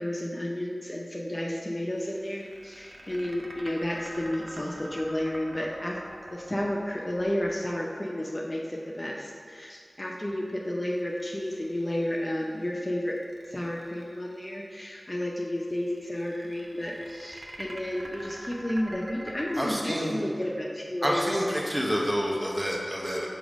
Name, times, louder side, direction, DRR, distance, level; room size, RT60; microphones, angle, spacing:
voice 1, 0.0-6.0 6.3-13.2 13.5-21.3 21.8-22.0, left 1 dB, 30° left, -2 dB, 0.6 m, -32 dB
sound 1, 2.0-8.2 11.0-12.6 13.1-14.4 15.7-19.7, right 1 dB, 60° right, 0.7 m, -45 dB
voice 2, 19.6-20.2 21.0-23.3, equal, 10° right, -3 dB, 1.1 m, -28 dB
5.1 x 3.8 x 4.9 m, 2.2 s
wide cardioid pair, 40°, 0 cm